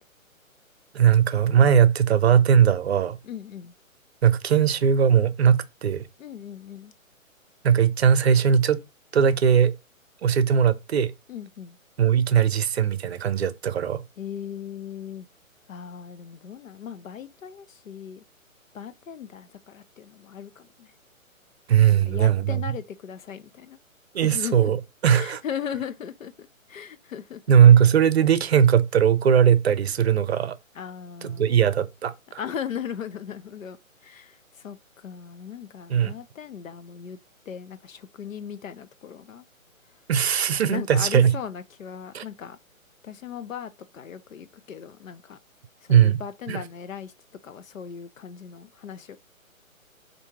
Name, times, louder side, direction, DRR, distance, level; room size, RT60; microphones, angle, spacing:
voice 1, 0.9-3.2 4.2-6.0 7.6-8.8 9.1-9.7 10.2-11.1 12.0-14.0 21.7-22.6 24.1-25.4 27.5-30.6 31.2-32.4 35.9-36.1 40.1-41.4 42.1-42.2 45.9-46.2 46.5-46.6, right 8 dB, 50° right, 0.6 m, -19 dB
voice 2, 3.2-3.7 6.2-6.9 11.3-11.8 14.2-15.3 15.7-18.2 18.7-20.9 21.9-23.8 24.2-24.7 25.1-27.6 30.7-31.8 32.4-33.8 34.0-37.2 37.5-39.5 40.7-42.6 43.0-45.4 45.8-47.1 47.4-49.2, left 8 dB, 70° left, 0.8 m, -38 dB
4.3 x 2.7 x 3.6 m
hypercardioid pair, 145°, 41 cm